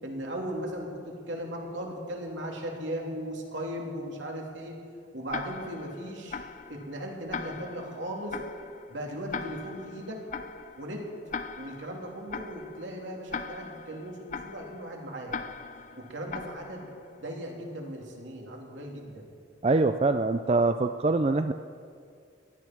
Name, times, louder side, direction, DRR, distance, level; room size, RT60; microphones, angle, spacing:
voice 1, 0.0-4.8 5.1-6.4 6.7-8.4 8.9-10.2 10.8-11.1 11.5-15.4 16.0-16.9 17.2-19.2, equal, 80° right, 0 dB, 3.0 m, -37 dB
Tick-tock, 5.3-17.2, left 5 dB, 40° left, 0.5 m, -41 dB
voice 2, 19.6-21.5, right 3 dB, 30° right, 9 dB, 0.4 m, -24 dB
18.5 x 12.0 x 6.0 m, 2.2 s
head